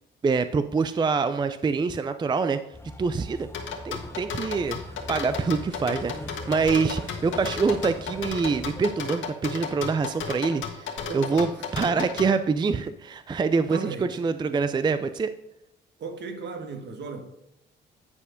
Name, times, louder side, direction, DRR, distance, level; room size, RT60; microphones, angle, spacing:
voice 1, 0.2-2.6 3.0-3.5 3.8-4.8 5.1-15.3, right 4 dB, 20° right, 0.4 m, -25 dB
sound 1, 2.7-8.8, left 2 dB, 10° left, 0.8 m, -41 dB
sound 2, 3.5-12.3, left 6 dB, 75° left, 1.5 m, -33 dB
voice 2, 7.2-7.7 11.1-12.1 13.7-14.1 16.0-17.2, right 4 dB, 60° right, 1.5 m, -37 dB
9.7 x 4.6 x 5.1 m
cardioid pair, 90°, 20 cm